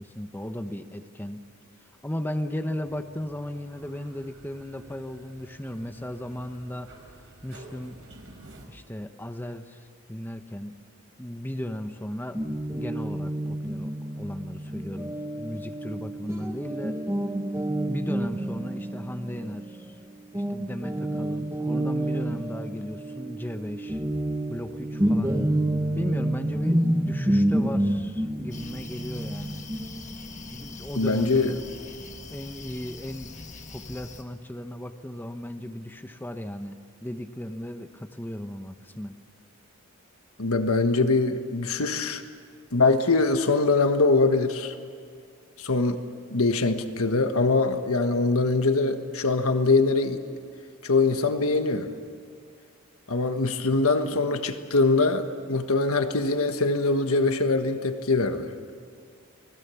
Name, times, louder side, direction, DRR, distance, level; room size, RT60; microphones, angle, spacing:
voice 1, 0.0-1.4 2.0-8.0 8.7-10.8 11.2-12.4 12.7-17.0 17.9-20.0 20.3-24.0 24.5-25.4 25.9-29.6 30.5-31.7 32.3-33.3 33.7-39.2, left 1 dB, 10° left, 7 dB, 0.9 m, -36 dB
sound 1, 2.8-8.7, right 2 dB, 60° right, 5.0 m, -51 dB
Guitar, 12.3-20.0 20.3-30.8, right 1 dB, 15° right, 1.4 m, -29 dB
sound 2, 28.5-34.2, left 3 dB, 35° left, 1.6 m, -43 dB
voice 2, 31.0-31.6 40.4-42.2 42.7-44.7 45.6-46.0 46.3-50.2 50.8-51.9 53.1-58.5, left 3 dB, 80° left, 7 dB, 1.5 m, -23 dB
30.0 x 20.5 x 7.1 m, 2.3 s
head